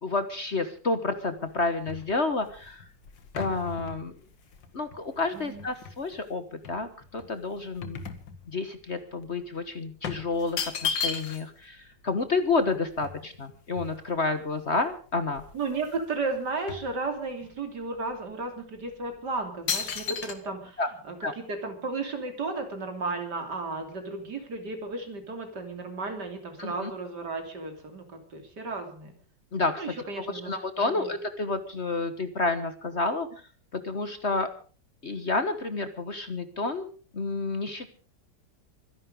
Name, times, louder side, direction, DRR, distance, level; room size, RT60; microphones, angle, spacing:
voice 1, 0.0-2.8 3.3-4.1 4.7-8.0 8.5-15.4 20.8-20.9 21.2-21.3 26.6-26.9 29.5-29.8 30.5-33.3 33.7-34.5 35.0-36.9 37.1-37.9, left 3 dB, 40° left, 10 dB, 1.4 m, -30 dB
sound 1, 1.1-6.2 6.6-8.8 9.1-9.3 10.0-11.6 11.9-12.0 12.2-14.4 14.9-15.0 15.3-16.0 16.3-17.5 18.1-18.3 18.9-19.2 19.7-20.3, left 6 dB, 90° left, 2.4 m, -36 dB
voice 2, 5.3-5.7 15.5-29.1 29.8-30.5 30.8-31.1, right 3 dB, 65° right, 5 dB, 3.6 m, -34 dB
24.0 x 11.0 x 5.1 m, 0.40 s
omnidirectional pair, 2.0 m